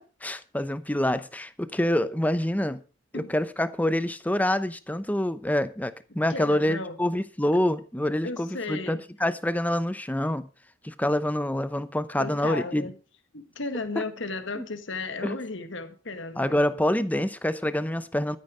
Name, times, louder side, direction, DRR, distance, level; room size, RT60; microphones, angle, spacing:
voice 1, 0.0-2.8 3.1-10.5 10.8-12.9 14.0-14.1 14.6-14.7 15.2-15.4 16.4-18.4, left 1 dB, 10° left, 0.8 m, -26 dB
voice 2, 6.3-7.0 8.2-9.0 12.2-12.9 13.3-16.6, left 3 dB, 65° left, 1.7 m, -34 dB
13.0 x 9.9 x 4.9 m
head